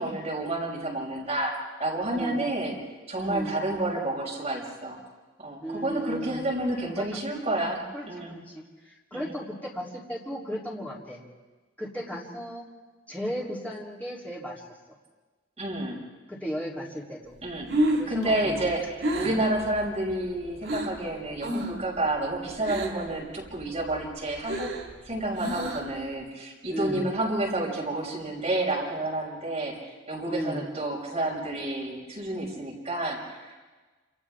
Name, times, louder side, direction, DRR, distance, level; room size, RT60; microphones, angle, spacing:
voice 1, 0.0-1.5 1.8-2.8 3.1-5.0 5.4-8.4 9.1-9.3 15.6-16.0 17.4-17.7 18.1-24.7 25.0-29.7 30.1-33.5, right 1 dB, 30° right, -4 dB, 5.9 m, -30 dB
voice 2, 2.1-2.4 3.1-3.5 5.6-6.4 6.9-7.1 7.3-7.4 7.9-11.2 11.8-12.7 13.1-14.6 16.3-17.3 17.9-18.7 19.2-19.4 26.7-27.1 30.3-30.6, equal, 10° left, -5 dB, 3.4 m, -35 dB
Breathing, 17.4-21.0 21.4-21.9 22.1-23.1 23.5-26.0, right 1 dB, 80° right, 4.0 m, -30 dB
28.5 x 28.0 x 3.7 m, 1.3 s
head